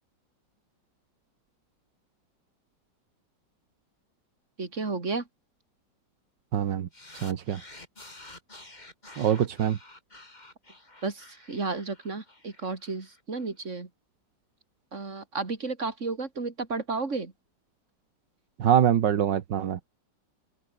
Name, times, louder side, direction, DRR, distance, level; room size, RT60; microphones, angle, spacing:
voice 1, 4.6-5.2 11.0-13.9 14.9-17.3, right 4 dB, 40° right, 3.4 m, -32 dB
voice 2, 6.5-6.9 7.1-7.6 9.2-9.8 18.6-19.8, right 9 dB, 75° right, 1.9 m, -24 dB
sound 1, 6.9-13.4, left 2 dB, 25° left, 3.6 m, -50 dB
open air
omnidirectional pair, 1.9 m